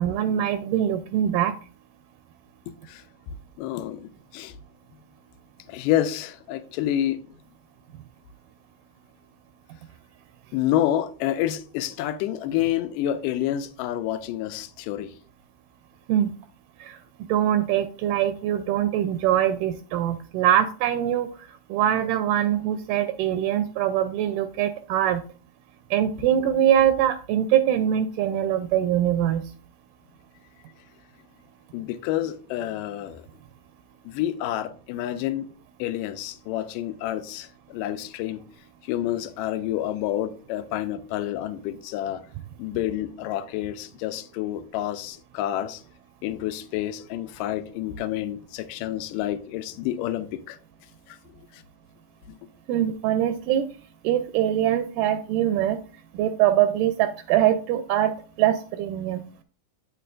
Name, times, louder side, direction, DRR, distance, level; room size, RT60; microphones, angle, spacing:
voice 1, 0.0-1.5 16.1-16.3 16.8-16.9 17.3-21.3 21.7-25.2 25.9-29.4 52.7-53.6 54.0-55.8 56.2-58.1 58.4-59.4, right 11 dB, 85° right, 2.1 m, -23 dB
voice 2, 3.6-4.6 5.7-7.2 10.5-15.1 31.7-33.2 34.1-35.5 35.8-38.4 38.9-42.2 42.6-45.8 46.2-50.6, left 12 dB, 85° left, 2.2 m, -28 dB
9.0 x 6.8 x 2.5 m
omnidirectional pair, 3.8 m